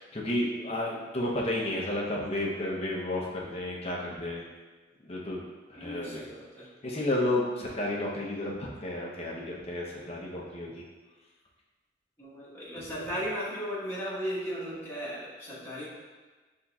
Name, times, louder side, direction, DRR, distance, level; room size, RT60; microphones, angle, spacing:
voice 1, 0.0-4.4 5.0-5.4 5.7-6.3 6.8-10.8, left 1 dB, 35° left, -3 dB, 0.7 m, -32 dB
voice 2, 5.7-6.7 12.2-15.9, equal, 15° left, -9 dB, 1.3 m, -36 dB
5.7 x 3.6 x 2.3 m, 1.3 s
head